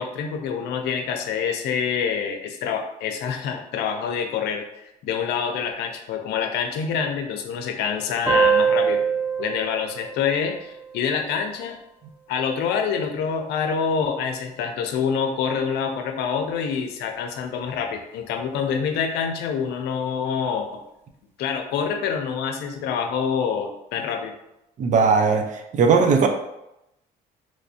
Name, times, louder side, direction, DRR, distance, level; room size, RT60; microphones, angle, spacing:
voice 1, 0.0-4.7 5.0-9.0 9.4-11.8 12.3-20.7 21.4-24.3, left 6 dB, 80° left, 4 dB, 0.6 m, -26 dB
sound 1, 8.3-11.4, right 5 dB, 10° right, 0.8 m, -24 dB
voice 2, 24.8-25.5 25.7-26.3, right 5 dB, 50° right, 5 dB, 0.5 m, -17 dB
3.2 x 3.1 x 2.7 m, 0.86 s
cardioid pair, 110°, 17 cm